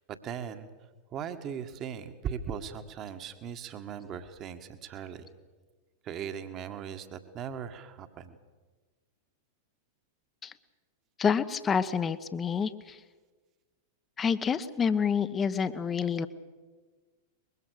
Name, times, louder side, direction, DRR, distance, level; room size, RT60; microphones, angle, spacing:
voice 1, 0.1-0.7 1.1-5.3 6.0-8.4, right 8 dB, 35° right, 8 dB, 1.8 m, -39 dB
voice 2, 11.2-13.0 14.2-16.3, left 6 dB, 20° left, 12 dB, 1.1 m, -28 dB
24.0 x 22.0 x 6.6 m, 1.3 s
figure-of-eight pair, 95°, 0 cm